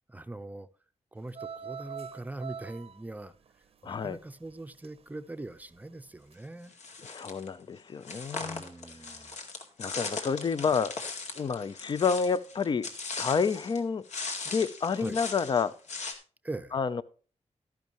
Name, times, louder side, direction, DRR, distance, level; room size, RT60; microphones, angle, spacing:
voice 1, 0.1-0.7 1.1-3.3 3.8-6.8 8.4-9.4 15.0-15.2 16.4-16.8, right 2 dB, 15° right, 0.6 m, -42 dB
sound 1, 1.2-5.1 5.4-5.9 6.3-6.4, right 7 dB, 55° right, 0.7 m, -44 dB
voice 2, 3.8-4.2 7.0-8.6 9.8-10.9 11.3-12.9 13.2-14.0 14.5-15.7 16.7-17.0, left 5 dB, 40° left, 0.6 m, -29 dB
sound 2, 6.7-7.5 8.0-13.8 14.1-16.1, left 4 dB, 75° left, 2.1 m, -39 dB
13.0 x 10.5 x 3.0 m
wide cardioid pair, 150°, 12 cm